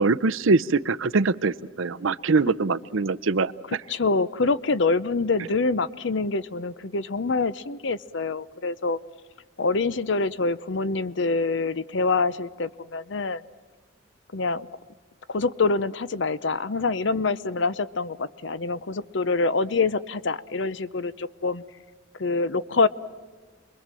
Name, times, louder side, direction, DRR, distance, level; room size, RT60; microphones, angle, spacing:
voice 1, 0.0-3.5, right 3 dB, 75° right, 14 dB, 0.7 m, -23 dB
voice 2, 3.9-9.0 9.6-13.4 14.3-14.7 15.3-21.6 22.2-22.9, left 3 dB, 60° left, 17 dB, 0.7 m, -25 dB
29.0 x 22.5 x 7.5 m, 1.4 s
head